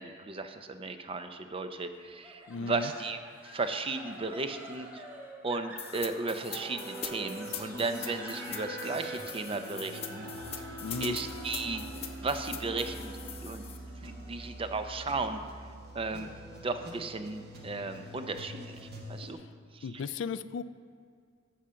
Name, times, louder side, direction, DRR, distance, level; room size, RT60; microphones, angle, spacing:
voice 1, 0.0-3.2 3.4-5.1 5.4-10.3 11.0-11.9 12.2-13.1 13.4-13.6 14.0-15.4 15.9-16.3 16.6-19.4 19.7-19.8, right 3 dB, 30° right, 8 dB, 0.6 m, -35 dB
sound 1, 2.2-15.4, equal, 10° right, 1.1 m, -49 dB
voice 2, 2.5-2.9 10.8-11.2 19.8-20.6, left 5 dB, 65° left, 15 dB, 0.4 m, -35 dB
sound 2, 5.8-13.8, left 8 dB, 30° left, 0.7 m, -42 dB
sound 3, 6.5-19.3, right 1 dB, 55° right, 1.5 m, -43 dB
14.0 x 5.1 x 5.7 m, 2.3 s
head